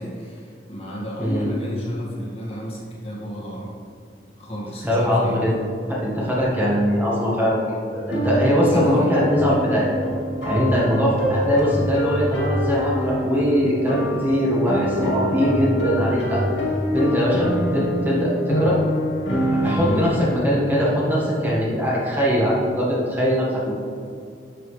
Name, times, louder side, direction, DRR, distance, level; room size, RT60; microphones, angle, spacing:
voice 1, 0.0-3.8 4.4-5.4 8.5-9.3 19.8-20.1, equal, 35° left, -5 dB, 2.0 m, -31 dB
voice 2, 4.8-5.5 5.9-9.9 10.4-16.4 16.9-18.8 19.5-23.7, equal, 10° right, -6 dB, 1.6 m, -21 dB
sound 1, 8.0-20.2, equal, 85° left, 2.3 m, -25 dB
11.0 x 6.9 x 3.3 m, 2.4 s
head